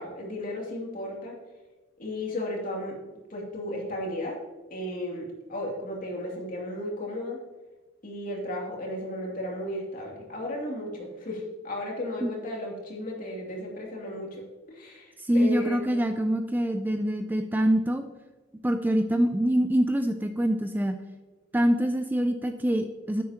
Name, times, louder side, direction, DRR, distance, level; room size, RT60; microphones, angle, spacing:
voice 1, 0.0-1.3 2.0-2.9 3.3-4.4 4.7-7.4 8.0-14.4 14.7-15.9, left 1 dB, 45° left, -2 dB, 2.7 m, -34 dB
voice 2, 15.2-18.0 18.6-21.0 21.5-23.2, equal, 10° right, 7 dB, 0.4 m, -25 dB
10.0 x 8.4 x 2.9 m, 1.3 s
head